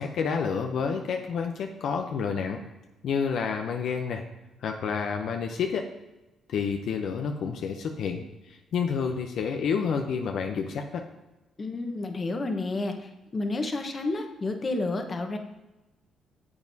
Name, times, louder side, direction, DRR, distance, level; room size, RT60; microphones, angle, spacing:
voice 1, 0.0-2.6 3.0-4.2 4.6-5.9 6.5-11.0, left 6 dB, 70° left, 4 dB, 0.6 m, -29 dB
voice 2, 11.6-15.4, left 2 dB, 35° left, 5 dB, 1.1 m, -30 dB
9.6 x 7.2 x 2.7 m, 1.0 s
cardioid pair, 80°, 0 cm